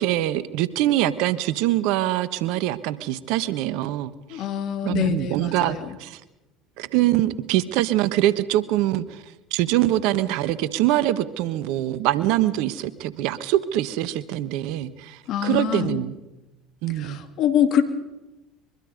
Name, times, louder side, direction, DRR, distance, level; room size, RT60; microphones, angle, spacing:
voice 1, 0.0-4.4 4.8-6.2 6.8-9.2 9.5-16.1 16.8-17.2, right 14 dB, 65° right, 15 dB, 1.3 m, -24 dB
voice 2, 4.3-6.0 15.3-16.0 16.9-17.8, left 9 dB, 55° left, 9 dB, 2.7 m, -25 dB
24.0 x 23.0 x 5.3 m, 1.0 s
hypercardioid pair, 70°, 0 cm